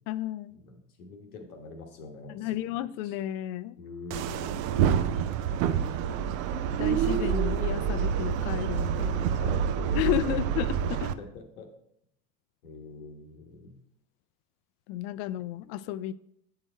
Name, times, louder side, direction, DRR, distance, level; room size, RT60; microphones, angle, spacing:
voice 1, 0.1-0.6 2.3-3.8 6.7-9.4 9.9-11.1 14.9-16.1, left 13 dB, 65° left, 0.5 m, -32 dB
voice 2, 0.6-2.6 3.8-4.6 9.1-10.6 11.2-11.7 12.6-13.8, left 3 dB, 90° left, 1.3 m, -44 dB
sound 1, 4.1-11.1, right 8 dB, 70° right, 0.6 m, -27 dB
7.6 x 4.7 x 4.3 m
hypercardioid pair, 95°, 43 cm